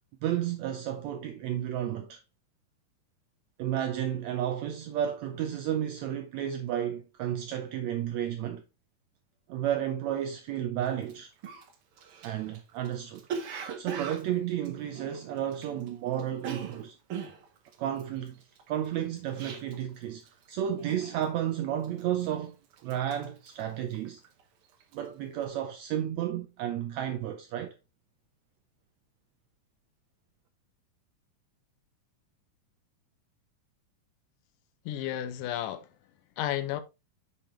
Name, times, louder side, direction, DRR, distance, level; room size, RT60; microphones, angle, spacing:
voice 1, 0.2-2.2 3.6-8.6 9.5-11.3 12.2-13.2 13.8-16.9 17.8-18.4 18.7-22.6 22.8-24.2 24.9-27.7, right 10 dB, 80° right, 1.6 m, -32 dB
Cough, 11.0-11.1 11.4-15.9 16.1-20.0 20.3-20.6 20.9-21.4 21.8-22.4 22.7-24.4 24.7-25.0, right 6 dB, 65° right, 1.4 m, -40 dB
voice 2, 34.9-35.9 36.4-36.8, left 12 dB, 85° left, 2.3 m, -32 dB
6.9 x 5.5 x 3.1 m
omnidirectional pair, 3.8 m